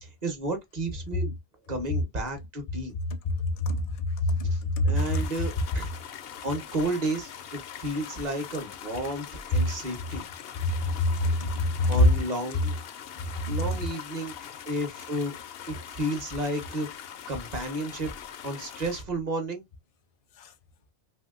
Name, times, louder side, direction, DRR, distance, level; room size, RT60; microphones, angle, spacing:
voice 1, 0.0-1.4 1.7-2.9 4.4-5.9 6.4-10.2 11.9-12.8 13.5-14.3 14.7-15.3 15.7-16.9 17.3-18.1 18.4-19.6, right 1 dB, 45° right, 1.0 m, -32 dB
voice 2, 3.4-3.8 4.2-5.0 10.6-10.7 11.0-12.0 13.5-13.6, left 1 dB, 45° left, 0.5 m, -25 dB
sound 1, 5.0-19.0, left 9 dB, 75° left, 0.8 m, -42 dB
3.0 x 2.7 x 2.3 m
omnidirectional pair, 1.0 m